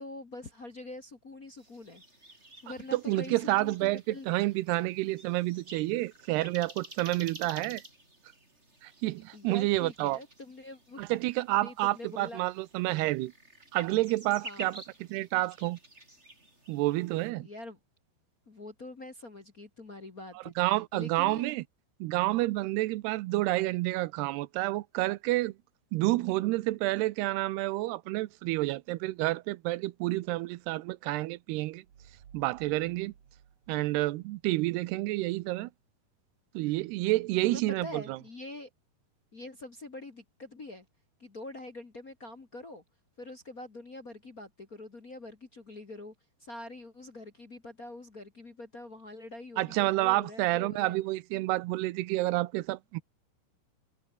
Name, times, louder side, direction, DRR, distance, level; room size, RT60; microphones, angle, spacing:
voice 1, 0.0-2.0 2.6-4.4 4.7-4.8 9.3-11.1 11.6-12.4 14.4-14.7 17.4-17.8 18.5-20.5 20.9-21.5 37.4-38.7 39.3-40.9 41.2-42.8 43.2-46.1 46.4-51.0, left 2 dB, 30° left, 1.7 m, -44 dB
sound 1, 1.6-17.3, right 2 dB, 15° right, 6.3 m, -51 dB
voice 2, 2.9-7.8 8.8-10.2 11.0-13.3 13.7-15.8 16.7-17.5 20.4-21.6 22.0-25.5 25.9-31.8 32.3-33.1 33.7-35.7 36.5-38.2 49.6-53.0, right 19 dB, 85° right, 2.8 m, -29 dB
sound 2, 31.8-35.2, right 8 dB, 50° right, 3.5 m, -59 dB
omnidirectional pair, 4.6 m